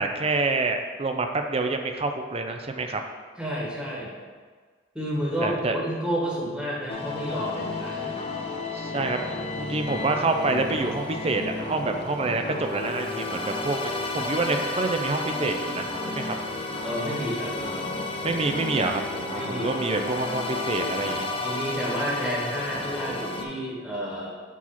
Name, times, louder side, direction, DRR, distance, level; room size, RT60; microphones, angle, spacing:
voice 1, 0.0-3.0 5.4-5.8 8.7-9.2 9.6-16.4 18.2-21.3, right 3 dB, 30° right, 5 dB, 0.5 m, -27 dB
voice 2, 3.4-4.1 4.9-8.3 16.8-18.0 19.4-19.7 21.4-24.3, equal, 5° right, -6 dB, 1.4 m, -31 dB
sound 1, 6.9-23.4, left 2 dB, 30° left, 0.5 m, -32 dB
4.8 x 4.1 x 5.7 m, 1.5 s
head